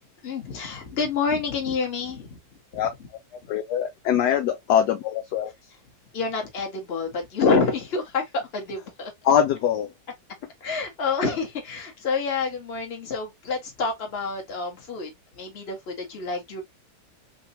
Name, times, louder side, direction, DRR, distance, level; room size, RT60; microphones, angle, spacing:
voice 1, 0.2-2.4 2.7-3.1 6.1-9.1 10.6-16.6, left 4 dB, 35° left, 1.3 m, -28 dB
voice 2, 3.5-5.5 9.3-9.9, left 9 dB, 70° left, 1.0 m, -22 dB
4.0 x 3.1 x 2.5 m
omnidirectional pair, 2.1 m